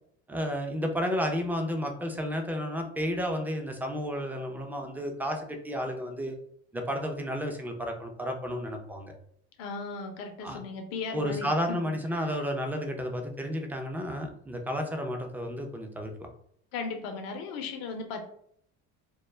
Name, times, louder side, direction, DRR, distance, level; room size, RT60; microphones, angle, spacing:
voice 1, 0.3-6.4 6.7-9.1 10.4-10.6 11.1-16.3, equal, 5° right, 3 dB, 0.4 m, -32 dB
voice 2, 9.6-11.8 16.7-18.3, left 4 dB, 80° left, 5 dB, 0.6 m, -36 dB
2.2 x 2.0 x 3.1 m, 0.67 s
supercardioid pair, 80°, 32 cm